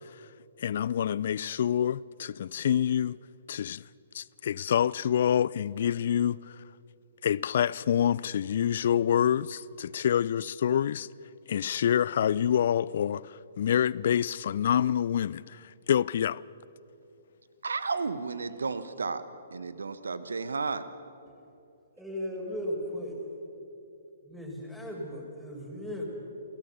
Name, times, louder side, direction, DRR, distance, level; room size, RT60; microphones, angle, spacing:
voice 1, 0.6-3.2 3.5-3.8 4.1-6.4 7.2-11.1 11.5-16.4, left 9 dB, 55° left, 0.4 m, -27 dB
voice 2, 17.6-19.2 19.5-20.9, right 4 dB, 70° right, 1.3 m, -32 dB
voice 3, 22.0-23.2 24.2-26.0, equal, 5° right, 5.2 m, -36 dB
28.5 x 17.0 x 6.8 m
figure-of-eight pair, 125°, 0 cm